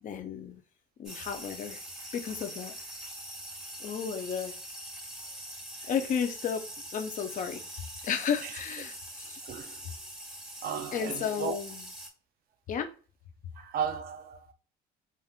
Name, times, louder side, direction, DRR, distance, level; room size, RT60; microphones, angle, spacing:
voice 1, 0.0-0.6 1.0-1.8 2.1-2.7 3.8-4.5 5.9-6.6 6.9-7.6 8.0-9.4 10.9-11.8 12.7-12.9, left 7 dB, 50° left, 0.6 m, -33 dB
sound 1, 1.0-12.1, right 1 dB, ahead, 1.2 m, -43 dB
voice 2, 9.4-9.8 10.6-11.6 13.5-14.5, right 8 dB, 60° right, 0.6 m, -35 dB
3.6 x 2.5 x 2.4 m
cardioid pair, 110°, 17 cm